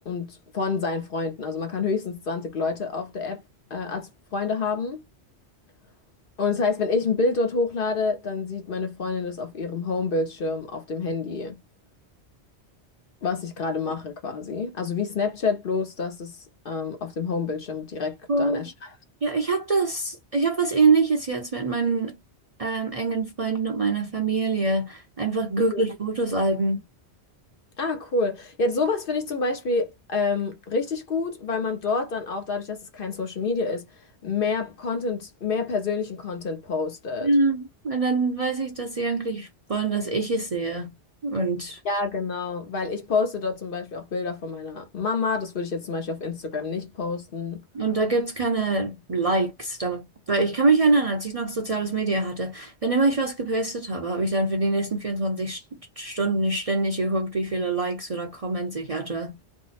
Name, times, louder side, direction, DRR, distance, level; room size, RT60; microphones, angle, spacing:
voice 1, 0.1-3.4 3.7-5.0 6.4-11.6 13.2-16.4 16.6-18.7 25.7-25.8 27.8-33.9 34.2-37.3 41.8-47.6, left 4 dB, 55° left, 0.9 m, -28 dB
voice 2, 18.3-18.7 19.2-22.1 22.6-26.8 37.2-40.9 41.2-41.8 47.7-59.4, right 3 dB, 40° right, 0.5 m, -25 dB
2.7 x 2.0 x 4.0 m
omnidirectional pair, 1.2 m